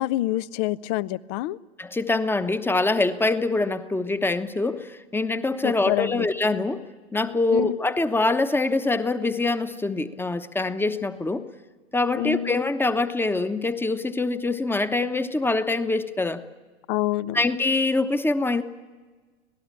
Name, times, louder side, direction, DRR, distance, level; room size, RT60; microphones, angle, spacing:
voice 1, 0.0-1.6 5.6-6.3 7.5-7.8 12.2-12.5 16.9-17.4, left 15 dB, 40° left, 20 dB, 0.7 m, -26 dB
voice 2, 1.8-6.9 7.1-11.4 11.9-16.4 17.3-18.6, left 2 dB, 5° left, 11 dB, 1.1 m, -24 dB
26.0 x 18.5 x 8.6 m, 1.3 s
figure-of-eight pair, 90°, 32 cm